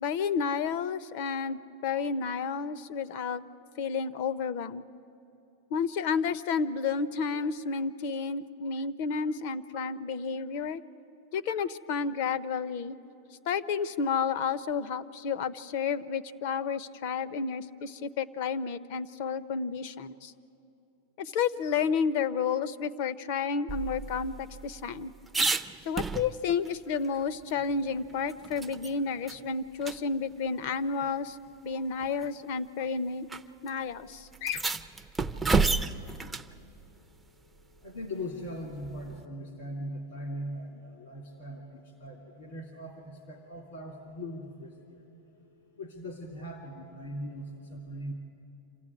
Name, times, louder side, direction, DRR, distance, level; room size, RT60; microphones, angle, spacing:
voice 1, 0.0-3.4 3.8-4.8 5.7-10.8 11.3-13.0 13.5-20.3 21.2-25.1 25.9-31.4 31.6-33.3 33.6-34.6, left 5 dB, 50° left, 16 dB, 0.7 m, -31 dB
sound 1, 23.7-26.7 27.0-27.1 27.5-28.9 29.3-29.4 29.8-30.0 31.0-31.1 32.0-32.3 33.3-33.4 33.7-33.8 34.3-36.5 38.8-39.3, right 4 dB, 5° right, 0.4 m, -31 dB
voice 2, 37.8-45.1 45.7-48.1, equal, 70° left, 2 dB, 2.8 m, -40 dB
27.0 x 15.0 x 9.8 m, 2.9 s
supercardioid pair, 170°, 0 cm